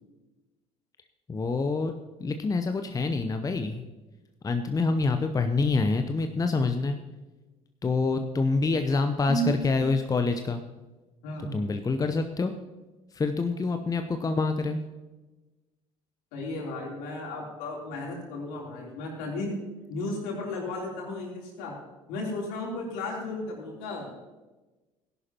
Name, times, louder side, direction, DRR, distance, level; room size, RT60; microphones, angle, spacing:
voice 1, 1.3-1.9 2.2-3.8 4.4-7.0 7.8-10.6 11.5-12.5 13.1-14.8, left 3 dB, 20° left, 7 dB, 0.8 m, -26 dB
voice 2, 11.2-11.7 16.3-19.6 19.9-21.7 22.1-24.1, left 1 dB, 65° left, -2 dB, 3.6 m, -34 dB
18.0 x 11.0 x 3.0 m, 1.2 s
figure-of-eight pair, 55°, 17 cm